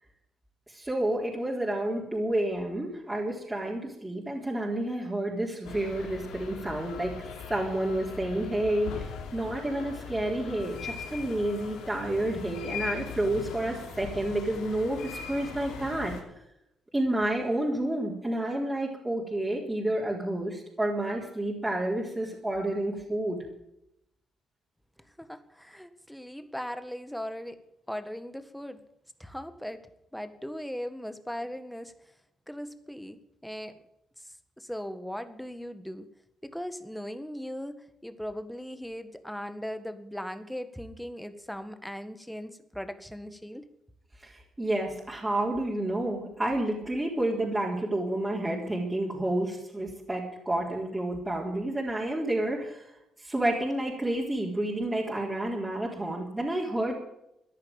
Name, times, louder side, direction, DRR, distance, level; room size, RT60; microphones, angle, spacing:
voice 1, 0.7-7.1 7.5-16.2 16.9-23.4 44.2-52.9 53.2-56.9, right 1 dB, 15° right, -4 dB, 4.0 m, -30 dB
sound 1, 5.6-16.2, left 6 dB, 90° left, 3.0 m, -40 dB
voice 2, 25.2-27.6 27.9-28.8 29.2-29.8 30.1-31.9 32.5-33.8 34.6-36.1 36.4-43.7, equal, ahead, 10 dB, 1.6 m, -38 dB
14.5 x 10.5 x 8.9 m, 0.81 s
cardioid pair, 90°, 0 cm